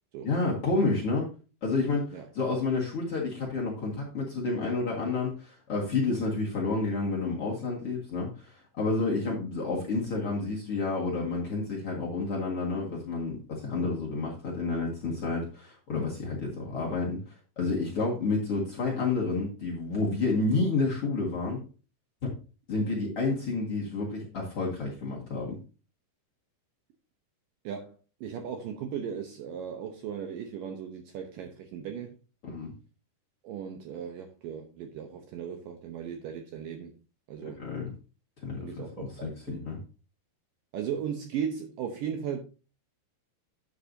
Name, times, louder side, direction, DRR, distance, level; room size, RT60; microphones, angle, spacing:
voice 1, 0.2-1.3 1.6-17.2 17.6-21.6 22.2-22.3 22.7-25.6 32.4-32.7 37.4-37.9 38.4-38.7 39.0-39.8, left 3 dB, 50° left, 1.9 m, -30 dB
voice 2, 27.6-32.2 33.4-36.9 37.3-37.7 38.6-39.7 40.7-42.4, right 8 dB, 80° right, 2.0 m, -37 dB
11.0 x 8.2 x 2.7 m
omnidirectional pair, 5.0 m